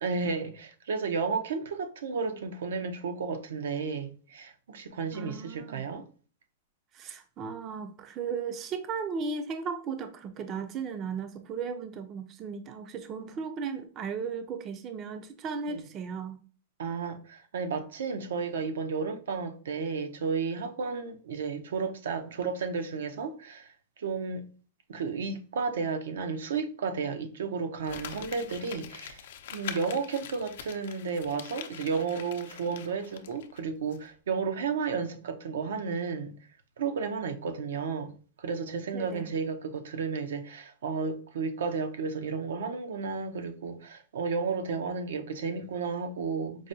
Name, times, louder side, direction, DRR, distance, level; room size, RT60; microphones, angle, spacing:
voice 1, 0.0-6.1 15.7-15.8 16.8-23.7 24.0-24.4 24.9-29.2 29.5-36.3 36.8-38.1 38.4-46.7, right 5 dB, 85° right, 0.6 m, -32 dB
voice 2, 5.1-5.8 6.9-16.4 38.9-39.3, right 5 dB, 25° right, 0.4 m, -36 dB
Crumpling crinkling, 27.8-33.6 33.9-34.0, left 9 dB, 70° left, 0.4 m, -43 dB
4.7 x 2.1 x 2.6 m
supercardioid pair, 150°, 0 cm